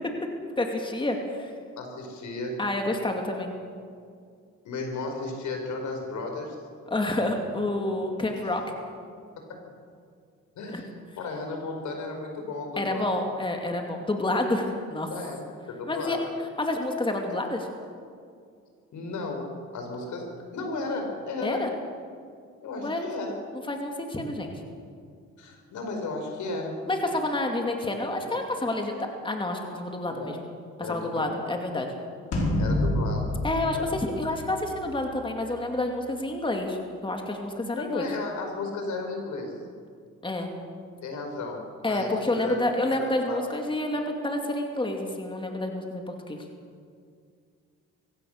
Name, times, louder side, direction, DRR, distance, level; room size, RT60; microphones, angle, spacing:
voice 1, 0.6-1.5 2.6-3.5 6.9-8.6 10.7-10.8 12.8-15.1 15.9-16.2 16.6-17.7 21.4-21.7 22.8-23.1 23.7-24.5 26.9-30.4 30.9-31.9 33.4-38.1 40.2-40.5 41.8-46.4, left 2 dB, 15° left, 2 dB, 2.6 m, -29 dB
voice 2, 1.8-2.6 4.6-6.6 8.4-8.5 10.6-10.9 11.2-13.1 15.1-15.4 15.7-16.2 18.9-21.7 22.6-23.4 25.4-26.8 30.2-30.3 30.8-31.3 32.6-33.3 33.7-33.9 37.8-39.5 41.0-42.6 43.3-43.4, left 3 dB, 75° left, 3 dB, 4.9 m, -34 dB
sound 1, 32.3-34.9, left 1 dB, 55° left, 4.9 m, -27 dB
24.0 x 17.0 x 6.7 m, 2.2 s
cardioid pair, 90°, 30 cm